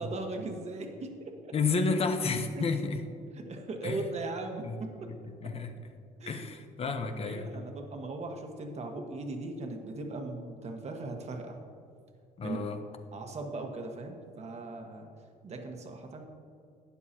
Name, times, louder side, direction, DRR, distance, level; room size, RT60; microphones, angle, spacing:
voice 1, 0.0-1.6 2.5-2.7 3.3-5.1 5.4-5.5 6.2-6.5 6.8-11.6 12.4-12.8 13.1-15.1 15.4-16.3, right 2 dB, 40° right, 4 dB, 1.3 m, -39 dB
voice 2, 1.5-3.0 3.8-4.1 4.6-4.7 5.4-5.7 6.3-7.5 12.4-12.8, left 4 dB, 35° left, 7 dB, 0.8 m, -31 dB
12.5 x 9.3 x 2.9 m, 2.3 s
cardioid pair, 110°, 17 cm